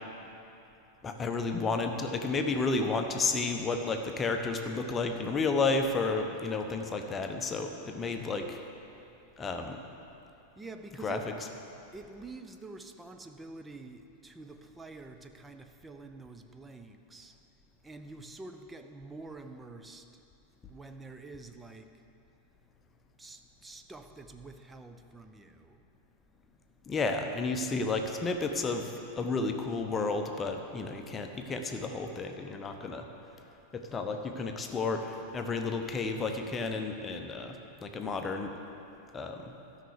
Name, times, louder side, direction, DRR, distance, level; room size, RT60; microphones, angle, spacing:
voice 1, 1.0-8.6 9.4-9.8 11.0-11.3 26.9-33.0 33.7-37.6 37.8-38.5 39.1-39.5, left 3 dB, 20° left, 4 dB, 0.9 m, -32 dB
voice 2, 10.6-11.3 11.9-17.3 17.8-20.0 20.7-22.0 23.2-25.8, right 3 dB, 10° right, 7 dB, 0.6 m, -47 dB
13.0 x 5.8 x 6.6 m, 2.7 s
figure-of-eight pair, 90°, 0 cm